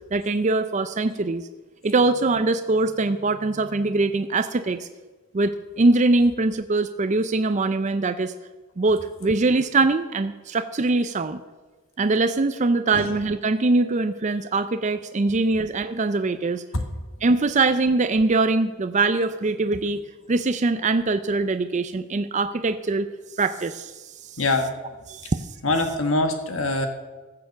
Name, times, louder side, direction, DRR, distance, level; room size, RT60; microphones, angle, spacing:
voice 1, 0.1-1.5 1.8-4.9 5.3-8.3 8.8-11.4 12.0-16.6 17.2-20.0 20.3-23.1 23.4-24.4 25.1-25.5, right 3 dB, 35° right, 10 dB, 0.4 m, -22 dB
voice 2, 24.4-24.7 25.6-26.9, left 2 dB, 65° left, 6 dB, 1.4 m, -23 dB
15.0 x 6.8 x 7.0 m, 1.2 s
head